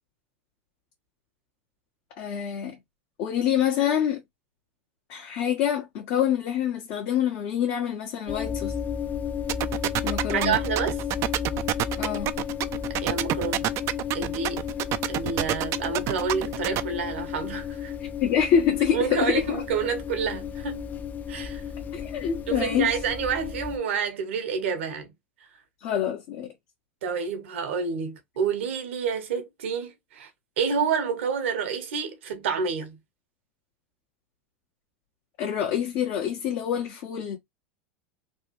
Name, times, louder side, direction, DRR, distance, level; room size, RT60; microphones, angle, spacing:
voice 1, 2.1-2.8 3.2-4.2 5.1-8.7 10.0-10.6 12.0-12.3 18.2-19.6 21.9-22.9 25.8-26.5 35.4-37.4, left 9 dB, 60° left, 1.1 m, -26 dB
sound 1, 8.3-23.8, left 8 dB, 25° left, 0.4 m, -33 dB
sound 2, 9.5-16.8, right 14 dB, 50° right, 0.4 m, -26 dB
voice 2, 10.3-11.0 13.0-13.7 14.1-14.6 15.1-17.9 18.9-20.9 21.3-21.6 22.5-25.1 27.0-30.3 30.6-33.0, right 6 dB, 80° right, 1.1 m, -28 dB
3.3 x 2.4 x 3.0 m
hypercardioid pair, 100°, 6 cm